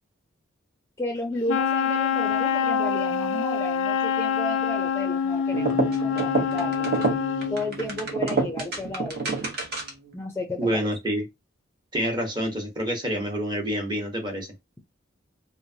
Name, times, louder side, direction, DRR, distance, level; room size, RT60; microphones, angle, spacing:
voice 1, 1.0-6.8 7.5-9.3 10.1-10.9, left 1 dB, 15° left, 0.5 m, -33 dB
Wind instrument woodwind instrument, 1.5-7.6, left 7 dB, 80° left, 0.4 m, -25 dB
sound 1, 5.5-10.1, right 3 dB, 55° right, 0.9 m, -28 dB
voice 2, 10.6-11.2 11.9-14.5, equal, 25° right, 1.0 m, -27 dB
3.0 x 2.1 x 2.7 m
head